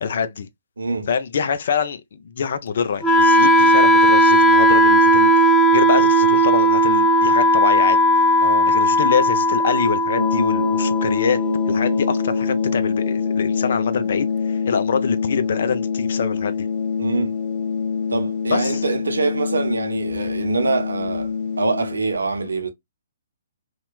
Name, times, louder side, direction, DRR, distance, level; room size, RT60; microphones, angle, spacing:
voice 1, 0.0-0.5 1.1-8.0 8.7-16.7 18.5-18.8, left 6 dB, 60° left, 0.5 m, -25 dB
voice 2, 0.8-1.1 8.4-8.7 17.0-17.3 18.1-21.3 21.6-22.7, right 3 dB, 80° right, 0.7 m, -24 dB
Wind instrument woodwind instrument, 3.0-13.0, right 1 dB, 10° left, 0.5 m, -16 dB
sound 1, 10.2-22.1, left 6 dB, 40° left, 1.1 m, -24 dB
2.9 x 2.1 x 2.3 m
figure-of-eight pair, 130°, 0 cm